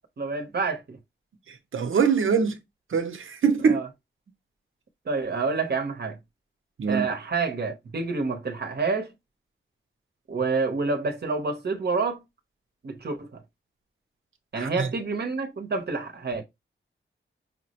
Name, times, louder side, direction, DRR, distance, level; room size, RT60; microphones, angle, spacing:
voice 1, 0.2-1.0 3.6-3.9 5.1-6.2 6.9-9.1 10.3-12.2 12.8-13.4 14.5-16.4, right 4 dB, 55° right, 0.9 m, -28 dB
voice 2, 1.5-2.6 2.9-3.8 6.8-7.1 14.6-14.9, right 6 dB, 80° right, 0.8 m, -23 dB
5.6 x 2.0 x 2.9 m
wide cardioid pair, 135°, 20 cm